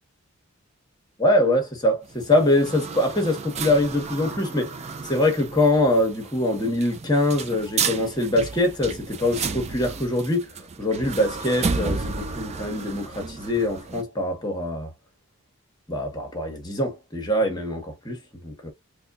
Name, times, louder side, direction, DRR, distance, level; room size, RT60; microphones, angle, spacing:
voice 1, 1.2-4.8 5.0-14.9 15.9-18.7, left 1 dB, 20° left, 1.3 m, -23 dB
sound 1, 2.0-14.0, right 5 dB, 30° right, 0.5 m, -32 dB
4.2 x 2.4 x 2.5 m
head